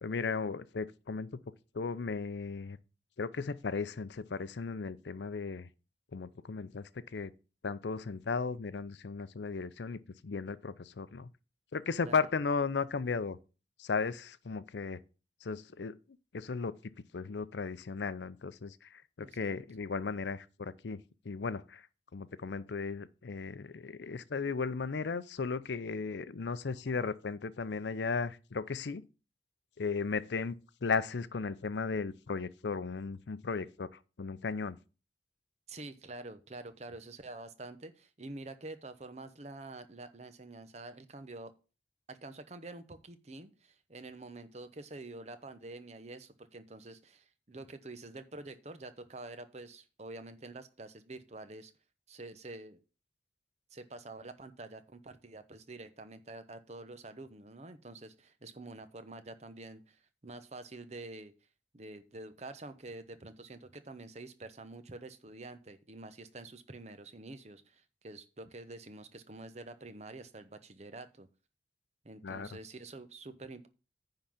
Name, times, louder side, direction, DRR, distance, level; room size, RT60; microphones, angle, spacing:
voice 1, 0.0-1.4 1.7-2.8 3.2-5.7 6.1-7.3 7.6-11.3 11.7-13.4 13.8-15.0 15.4-16.0 16.3-16.7 17.1-21.0 21.2-21.8 22.1-29.0 29.8-33.9 34.2-34.8 72.2-72.5, left 4 dB, 80° left, 0.6 m, -35 dB
voice 2, 19.2-19.6 35.7-41.5 42.1-51.7 52.1-52.8 53.7-61.3 61.7-71.3 72.0-73.7, right 2 dB, 40° right, 0.9 m, -47 dB
9.8 x 3.9 x 7.2 m
head